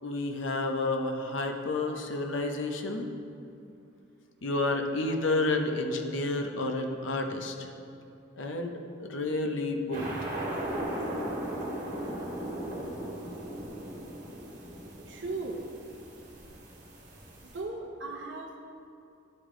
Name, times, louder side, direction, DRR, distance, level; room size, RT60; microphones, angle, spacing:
voice 1, 0.0-3.1 4.4-7.7 8.4-10.1, left 2 dB, 90° left, 4 dB, 0.7 m, -30 dB
sound 1, 9.9-17.6, right 1 dB, 40° right, 1.7 m, -37 dB
voice 2, 15.1-15.6 17.4-18.6, right 3 dB, 65° right, 0 dB, 0.6 m, -37 dB
11.0 x 4.9 x 3.7 m, 2.7 s
head